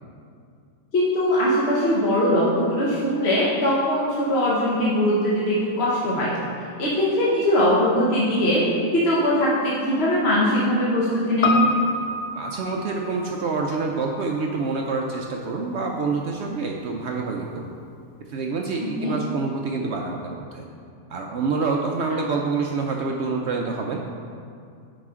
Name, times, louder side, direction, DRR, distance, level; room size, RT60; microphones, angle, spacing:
voice 1, 0.9-6.3 6.8-8.7 8.9-11.7 19.0-19.1, equal, 50° left, -7 dB, 1.1 m, -21 dB
Piano, 11.4-15.9 16.2-16.3, left 3 dB, 65° left, 0.6 m, -28 dB
voice 2, 12.3-17.7 18.3-20.7 21.1-24.0, right 4 dB, 65° right, 1 dB, 0.7 m, -27 dB
8.9 x 4.8 x 3.6 m, 2.4 s
omnidirectional pair, 1.5 m